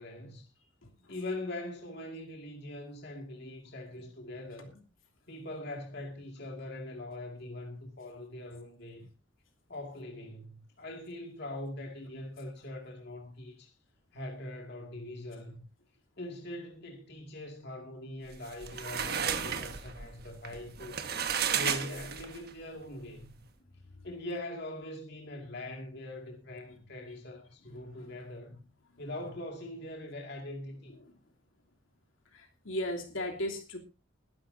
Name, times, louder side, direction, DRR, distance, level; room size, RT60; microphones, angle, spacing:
voice 1, 0.0-0.5 1.1-4.7 5.3-9.1 9.7-13.7 14.1-15.6 16.2-21.0 21.5-23.4 24.0-28.6 29.0-31.0, left 1 dB, 50° left, 2.3 m, -42 dB
voice 2, 0.6-1.1 28.0-28.1 28.4-28.5 32.3-33.8, left 1 dB, 75° left, 3.0 m, -37 dB
sound 1, 18.3-22.5, right 7 dB, 50° right, 1.4 m, -33 dB
21.5 x 12.0 x 2.7 m
head